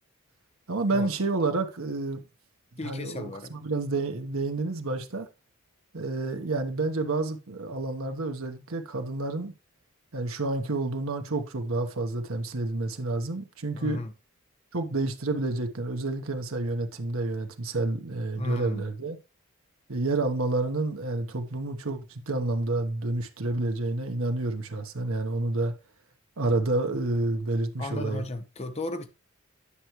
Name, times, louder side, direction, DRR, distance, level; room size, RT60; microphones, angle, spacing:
voice 1, 0.7-2.2 2.8-5.3 5.9-9.5 10.1-14.0 14.7-19.2 19.9-25.7 26.4-28.2, right 2 dB, 80° right, 1.1 m, -29 dB
voice 2, 2.8-3.5 13.7-14.1 18.3-18.9 27.8-29.1, left 2 dB, 30° left, 0.9 m, -35 dB
9.9 x 5.8 x 3.1 m
head